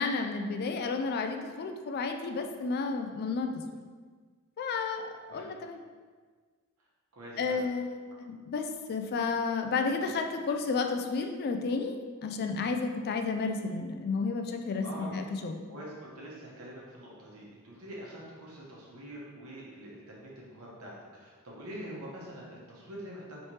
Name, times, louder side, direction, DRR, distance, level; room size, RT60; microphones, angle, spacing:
voice 1, 0.0-3.5 4.6-5.8 7.4-15.6, left 4 dB, 45° left, 5 dB, 0.3 m, -32 dB
voice 2, 7.1-7.7 14.8-15.1 15.7-23.5, right 1 dB, 70° right, -4 dB, 1.1 m, -45 dB
4.2 x 3.2 x 3.1 m, 1.5 s
head